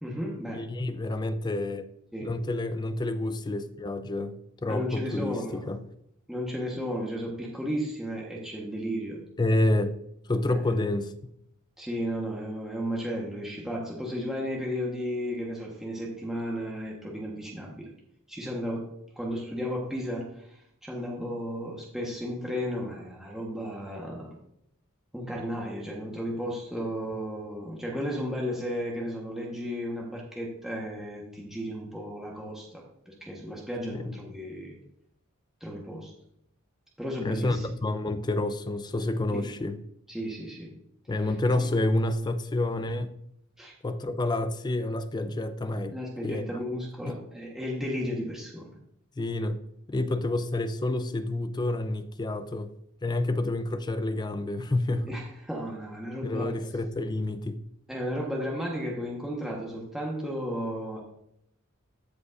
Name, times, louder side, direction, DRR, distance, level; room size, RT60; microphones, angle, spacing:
voice 1, 0.0-0.7 2.1-2.3 4.7-5.7 6.3-9.2 10.5-10.7 11.8-17.9 18.3-18.9 19.1-24.3 25.1-34.7 35.6-36.1 37.0-37.7 39.3-39.5 40.1-40.7 41.6-41.7 43.6-43.7 45.9-48.7 55.0-56.5 57.9-61.0, equal, ahead, 1.1 m, -34 dB
voice 2, 0.5-1.8 2.2-5.8 9.4-10.0 10.3-11.1 33.9-34.1 37.2-39.8 41.1-43.1 43.8-45.9 46.2-46.6 47.1-47.2 49.2-49.6 49.9-52.7 53.0-55.2 56.2-57.6, left 2 dB, 20° left, 0.4 m, -29 dB
14.5 x 5.0 x 2.5 m
head